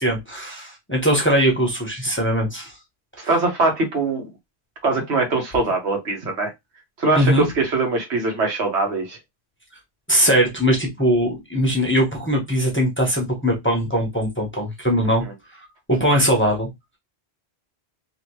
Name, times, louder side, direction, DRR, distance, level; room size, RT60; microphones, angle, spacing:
voice 1, 0.0-2.7 3.2-3.3 7.1-7.5 10.1-15.2 15.9-16.7, equal, 10° left, 0.8 m, -20 dB
voice 2, 3.3-4.3 4.8-6.5 7.0-9.2 15.2-15.3, right 3 dB, 85° right, 1.4 m, -22 dB
3.0 x 2.7 x 3.0 m
omnidirectional pair, 1.1 m